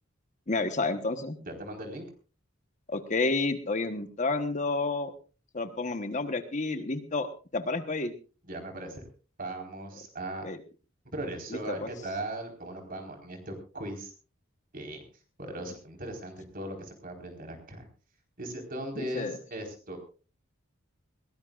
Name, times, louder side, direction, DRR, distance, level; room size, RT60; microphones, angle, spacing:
voice 1, 0.5-1.4 2.9-5.1 5.5-7.3 7.5-8.1 10.4-10.6 11.5-11.9 19.1-19.4, left 3 dB, 35° left, 8 dB, 1.1 m, -30 dB
voice 2, 1.4-2.1 8.4-9.1 9.4-10.5 11.0-14.1 14.7-15.0 15.4-17.8 18.4-20.0, right 1 dB, 45° right, 3 dB, 4.3 m, -38 dB
21.5 x 18.0 x 2.4 m, 0.36 s
head